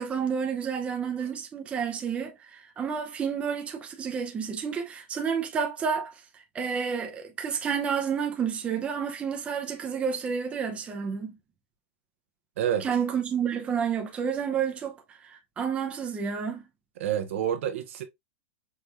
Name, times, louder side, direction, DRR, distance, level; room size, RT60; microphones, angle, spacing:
voice 1, 0.0-11.4 12.8-16.6, right 7 dB, 15° right, 0.7 m, -30 dB
voice 2, 17.0-18.0, right 9 dB, 70° right, 1.2 m, -28 dB
5.4 x 3.0 x 2.5 m
supercardioid pair, 150°, 7 cm